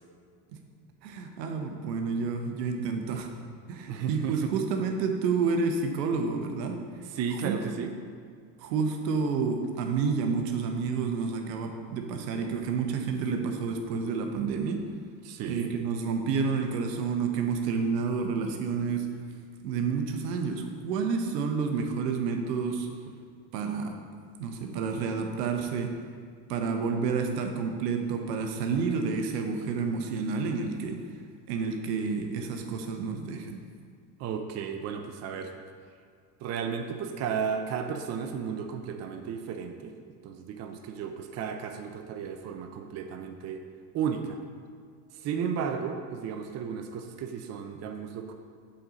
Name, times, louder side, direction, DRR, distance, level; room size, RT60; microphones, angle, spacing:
voice 1, 1.0-3.3 3.7-6.8 7.4-7.6 8.6-14.8 15.4-19.1 19.6-22.9 23.5-23.9 24.4-25.9 26.5-31.0 31.5-33.6, right 5 dB, 75° right, 4 dB, 1.0 m, -29 dB
voice 2, 3.9-4.5 7.1-7.9 15.2-15.7 34.2-35.5 36.4-39.9 40.2-43.6 43.9-44.4 45.2-48.3, right 7 dB, 35° right, 5 dB, 0.6 m, -34 dB
7.7 x 4.1 x 5.0 m, 2.1 s
supercardioid pair, 105°, 49 cm